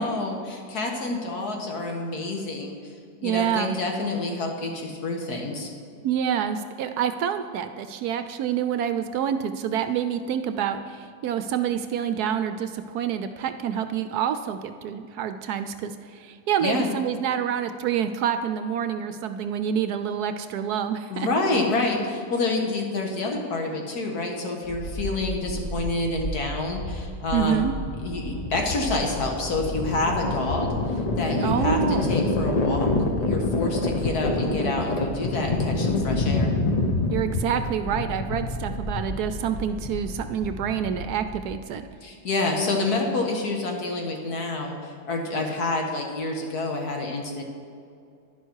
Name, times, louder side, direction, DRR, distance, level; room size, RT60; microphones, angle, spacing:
voice 1, 0.0-2.9 3.2-5.7 16.6-16.9 21.1-27.6 28.0-32.9 33.2-36.5 42.0-47.4, left 2 dB, 60° left, 1 dB, 2.0 m, -28 dB
voice 2, 3.2-3.8 6.0-21.3 27.3-27.8 31.3-32.1 37.1-41.8, right 8 dB, 70° right, 9 dB, 1.0 m, -27 dB
sound 1, 24.7-41.7, left 2 dB, 45° left, 0.5 m, -27 dB
11.0 x 10.5 x 4.6 m, 2.4 s
omnidirectional pair, 1.8 m